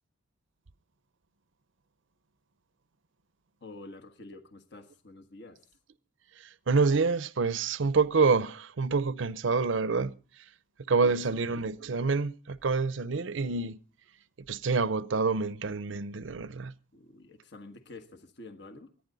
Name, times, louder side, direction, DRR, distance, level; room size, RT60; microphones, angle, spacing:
voice 1, 3.6-5.7 11.0-11.4 16.9-18.9, left 2 dB, 60° left, 1.4 m, -48 dB
voice 2, 6.7-10.1 10.9-13.8 14.5-16.7, right 4 dB, 70° right, 0.6 m, -27 dB
24.0 x 10.5 x 4.0 m
head